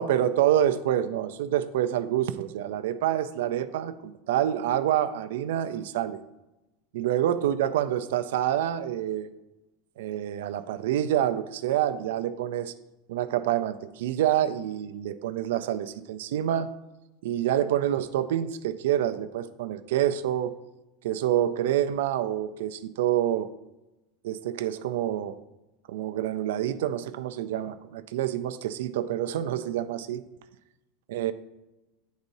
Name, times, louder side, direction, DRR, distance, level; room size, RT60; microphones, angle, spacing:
voice 1, 0.0-6.2 6.9-9.3 10.0-12.7 13.1-16.7 17.2-20.5 21.0-23.5 24.2-25.4 25.9-30.2 31.1-31.3, right 11 dB, 90° right, 11 dB, 0.4 m, -27 dB
10.5 x 4.0 x 2.7 m, 1.0 s
supercardioid pair, 175°, 0 cm